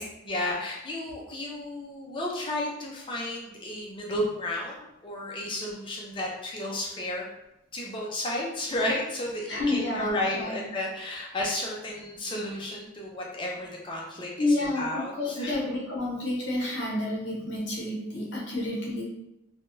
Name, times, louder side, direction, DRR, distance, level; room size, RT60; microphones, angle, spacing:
voice 1, 0.0-7.3 7.7-15.6, left 1 dB, 25° left, -2 dB, 0.5 m, -33 dB
voice 2, 9.5-10.6 14.4-19.0, left 2 dB, 55° left, -4 dB, 0.9 m, -29 dB
3.4 x 2.2 x 2.6 m, 0.89 s
head